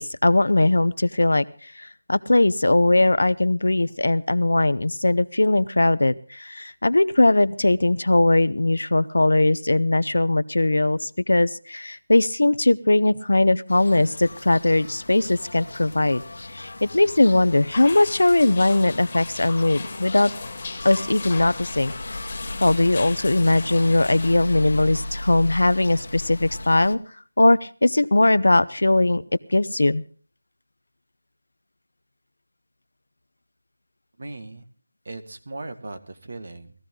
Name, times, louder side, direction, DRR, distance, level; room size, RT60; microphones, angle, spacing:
voice 1, 0.0-1.5 1.8-16.2 16.5-20.3 20.8-21.9 22.6-27.0 27.4-29.2 29.5-30.0, left 2 dB, 85° left, 15 dB, 0.8 m, -20 dB
sound 1, 13.7-27.0, left 2 dB, 65° left, 1.2 m, -37 dB
sound 2, 17.7-24.3, left 4 dB, 25° left, 1.9 m, -39 dB
voice 2, 34.2-34.6 35.0-36.7, right 2 dB, 50° right, 9 dB, 1.9 m, -38 dB
19.5 x 15.0 x 3.9 m, 0.40 s
figure-of-eight pair, 170°, 0 cm